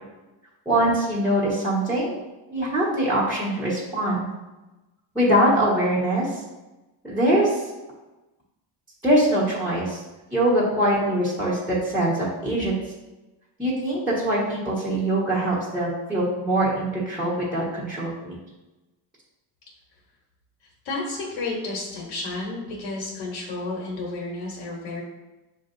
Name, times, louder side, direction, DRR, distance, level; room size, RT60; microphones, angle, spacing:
voice 1, 0.6-2.2 2.5-4.3 5.1-6.4 7.0-7.7 9.0-10.0 10.3-12.7 13.6-18.3, right 1 dB, ahead, -9 dB, 1.4 m, -23 dB
voice 2, 20.8-25.0, left 2 dB, 65° left, -3 dB, 1.2 m, -31 dB
7.0 x 2.6 x 2.6 m, 1.1 s
cardioid pair, 115°, 47 cm